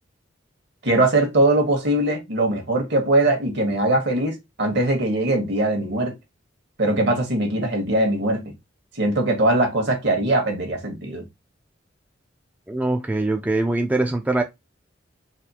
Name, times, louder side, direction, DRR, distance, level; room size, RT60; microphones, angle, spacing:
voice 1, 0.8-6.1 6.8-8.4 9.0-11.2, right 1 dB, 65° right, 1.3 m, -21 dB
voice 2, 12.7-14.4, right 2 dB, 10° right, 0.3 m, -22 dB
4.1 x 2.3 x 2.7 m
head